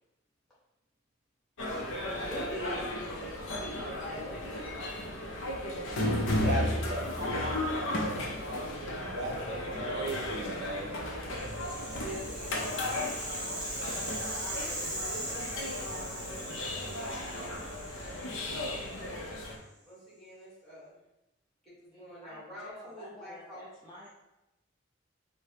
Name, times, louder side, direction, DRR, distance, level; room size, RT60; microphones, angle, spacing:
sound 1, 1.6-19.6, left 1 dB, 70° left, 0.6 m, -34 dB
voice 1, 2.2-2.9 3.4-4.4 6.3-8.6 9.4-10.1 12.0-13.0 14.3-16.3 16.8-17.6 17.9-19.1 19.9-21.0 21.6-23.7, equal, 5° left, -9 dB, 1.4 m, -46 dB
voice 2, 6.1-7.0 8.7-12.0, right 2 dB, 55° right, -1 dB, 0.5 m, -40 dB
Rattle (instrument), 11.3-19.5, right 1 dB, 15° right, 1.0 m, -40 dB
voice 3, 21.9-24.1, left 1 dB, 20° left, -5 dB, 0.5 m, -50 dB
4.8 x 2.1 x 2.8 m, 0.93 s
head